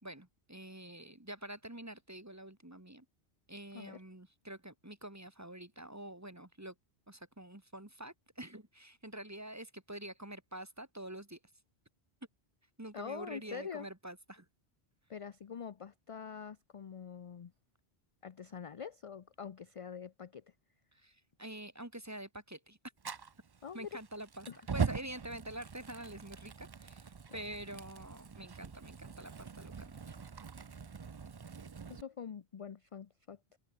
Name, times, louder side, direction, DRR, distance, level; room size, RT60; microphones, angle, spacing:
voice 1, 0.0-3.1 3.5-6.7 7.1-11.4 12.8-14.5 20.9-22.8 23.7-24.5 24.7-30.1, right 1 dB, 15° right, 1.8 m, -47 dB
voice 2, 12.9-13.9 15.1-17.5 18.2-20.5 23.6-24.0 24.5-24.6 27.3-27.4 31.9-33.6, left 7 dB, 40° left, 0.5 m, -45 dB
Fire, 23.0-32.0, right 5 dB, 40° right, 0.3 m, -42 dB
omnidirectional pair, 1.1 m